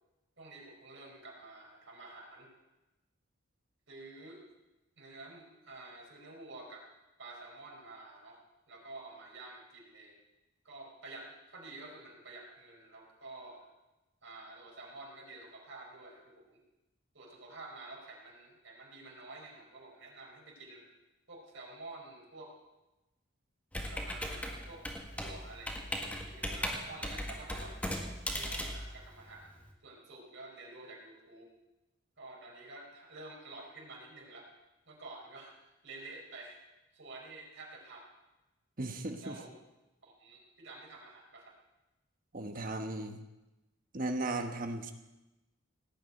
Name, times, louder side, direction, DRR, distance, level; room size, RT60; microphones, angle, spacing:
voice 1, 0.4-2.5 3.9-4.4 5.0-6.9 7.2-8.4 8.7-10.2 10.6-13.7 14.2-16.6 17.1-20.9 21.3-22.5 23.9-24.9 25.2-27.8 28.3-31.5 32.2-34.5 34.9-35.5 35.8-36.6 36.9-38.1 39.2-39.5 40.0-41.6, right 2 dB, 65° right, -2 dB, 4.9 m, -50 dB
Computer keyboard, 23.7-29.7, equal, 5° left, 1.8 m, -38 dB
voice 2, 38.8-39.4 42.3-43.2 43.9-44.9, right 2 dB, 40° right, 6 dB, 1.2 m, -36 dB
18.0 x 7.1 x 9.2 m, 1.0 s
head